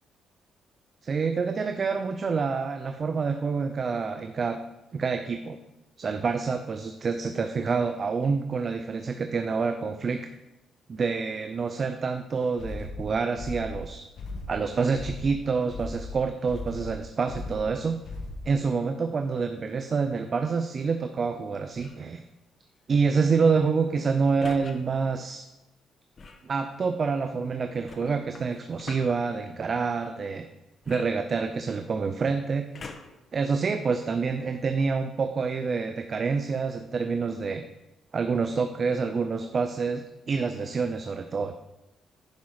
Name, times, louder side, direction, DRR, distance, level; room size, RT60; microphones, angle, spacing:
voice 1, 1.0-4.6 4.9-5.6 6.0-10.3 10.9-14.1 14.5-18.0 18.4-22.2 22.9-25.5 26.4-30.5 30.9-32.7 33.3-37.6 38.1-41.5, right 5 dB, 45° right, 7 dB, 0.6 m, -27 dB
sound 1, 12.6-18.6, left 2 dB, 65° left, 1.6 m, -38 dB
sound 2, 21.7-22.1 24.4-24.7 26.1-26.5 27.9-29.2 30.8-31.8 32.7-33.3 33.9-34.0, left 4 dB, 45° left, 1.2 m, -44 dB
10.5 x 5.5 x 4.8 m, 0.97 s
cardioid pair, 90°, 0 cm